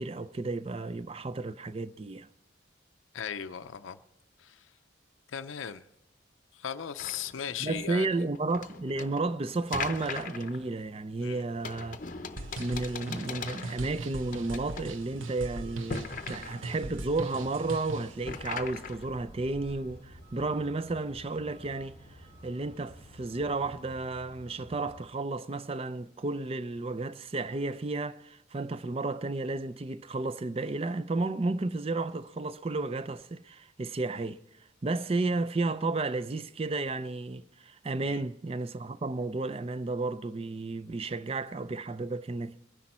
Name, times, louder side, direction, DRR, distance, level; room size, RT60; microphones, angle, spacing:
voice 1, 0.0-2.3 7.6-12.0 12.6-34.4 34.8-42.6, right 3 dB, 30° right, 0.4 m, -32 dB
voice 2, 3.1-4.0 4.4-4.6 5.3-5.8 6.5-8.1 11.2-11.4 38.0-38.2, left 8 dB, 80° left, 0.5 m, -37 dB
sound 1, 7.0-23.9, left 5 dB, 40° left, 0.7 m, -43 dB
Truck, 11.6-25.0, equal, 55° right, 3.6 m, -52 dB
sound 2, 12.4-18.2, right 2 dB, 80° right, 0.8 m, -40 dB
22.0 x 10.0 x 4.3 m
head